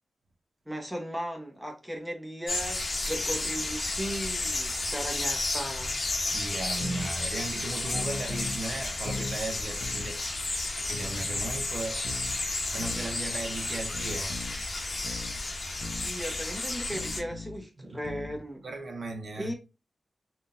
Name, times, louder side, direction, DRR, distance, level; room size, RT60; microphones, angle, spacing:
voice 1, 0.7-6.0 16.0-18.7 19.4-19.5, equal, 5° right, 0.8 m, -37 dB
sound 1, 2.5-17.2, left 2 dB, 45° left, 0.8 m, -32 dB
voice 2, 6.3-10.2 10.7-12.1 12.7-14.5 17.8-18.1 18.6-19.5, right 2 dB, 55° right, 0.6 m, -37 dB
sound 2, 6.8-7.1 7.9-8.6 9.0-9.4 9.8-10.1 10.9-11.6 12.0-12.4 12.8-13.1 13.9-14.6 15.0-15.4 15.8-16.1 16.9-17.6 18.0-18.4, left 3 dB, 80° left, 0.5 m, -39 dB
3.7 x 2.3 x 2.5 m
wide cardioid pair, 90°, 0 cm